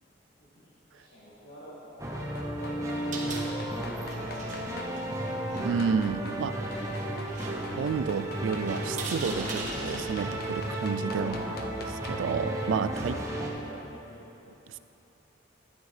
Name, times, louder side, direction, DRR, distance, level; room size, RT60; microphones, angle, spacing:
voice 1, 0.4-2.0 2.9-3.9 4.5-5.1 6.3-6.9 11.1-11.8 13.1-14.5, equal, 70° left, -12 dB, 2.2 m, -48 dB
sound 1, 2.0-4.9 5.6-6.4 6.7-12.4 12.7-12.8, left 4 dB, 50° left, 0.6 m, -46 dB
sound 2, 2.0-13.5, right 1 dB, 15° right, 0.8 m, -34 dB
sound 3, 2.9-11.6, right 2 dB, 40° right, 1.2 m, -42 dB
voice 2, 5.6-6.5 7.8-11.4 12.1-13.2 14.7-14.8, right 6 dB, 90° right, 13 dB, 0.3 m, -30 dB
11.5 x 9.8 x 3.3 m, 2.9 s
head